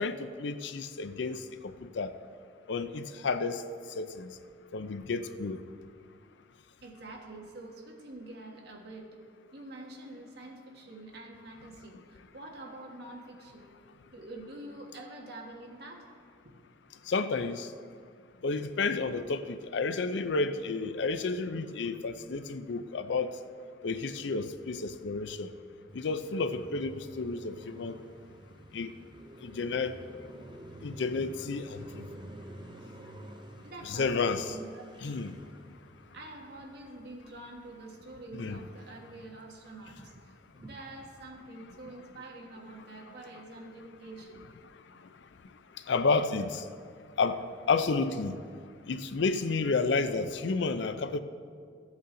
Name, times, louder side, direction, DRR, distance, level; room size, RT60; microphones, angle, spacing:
voice 1, 0.0-1.4 2.0-2.1 2.7-3.6 4.0-4.3 4.7-5.6 17.1-17.7 18.4-23.3 23.8-25.5 25.9-28.0 28.7-28.9 29.4-29.9 30.8-31.8 33.8-34.6 35.0-35.3 38.3-38.6 45.9-46.6 47.2-47.4 47.7-48.3 48.9-51.2, left 4 dB, 65° left, 11 dB, 0.5 m, -31 dB
voice 2, 6.8-9.1 9.5-13.7 14.1-16.1 16.4-16.6 33.6-35.3 36.1-44.5, right 2 dB, 55° right, 1 dB, 1.4 m, -46 dB
Car passing by, 25.9-38.4 38.7-41.2, right 1 dB, 25° right, 0.6 m, -50 dB
14.0 x 8.1 x 3.8 m, 2.1 s
head